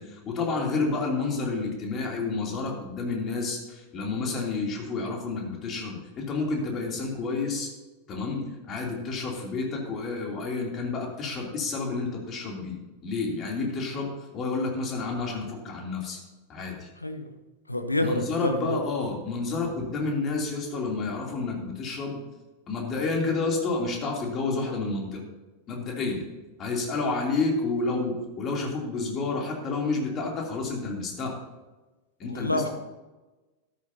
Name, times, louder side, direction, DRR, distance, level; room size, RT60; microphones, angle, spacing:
voice 1, 0.0-7.7 8.1-16.2 16.5-16.9 18.0-22.2 22.7-25.2 25.7-26.2 26.6-31.3 32.2-32.7, left 3 dB, 30° left, 0 dB, 3.0 m, -30 dB
voice 2, 17.0-17.3 17.7-18.8 32.3-32.7, left 1 dB, 85° left, 7 dB, 0.9 m, -27 dB
13.0 x 12.0 x 2.8 m, 1.2 s
figure-of-eight pair, 90°, 0 cm